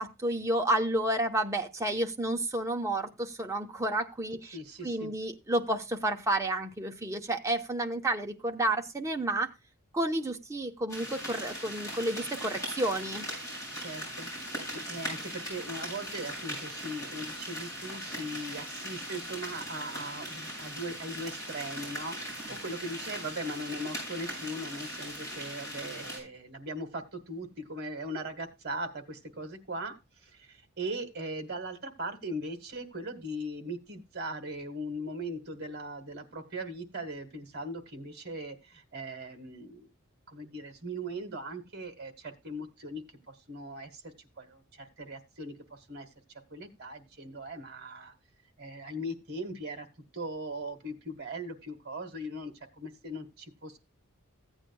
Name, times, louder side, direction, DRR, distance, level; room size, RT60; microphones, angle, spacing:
voice 1, 0.0-4.6 4.8-9.5 9.9-13.3, right 1 dB, 15° right, 3 dB, 0.9 m, -30 dB
voice 2, 4.5-5.1 13.8-14.3 14.7-29.9 30.2-39.9 40.3-46.1 46.5-48.1 48.6-49.9 50.1-53.8, right 1 dB, 50° right, 7 dB, 1.6 m, -39 dB
sound 1, 10.9-26.2, equal, 15° left, 6.7 m, -39 dB
15.0 x 8.9 x 2.3 m, 0.23 s
head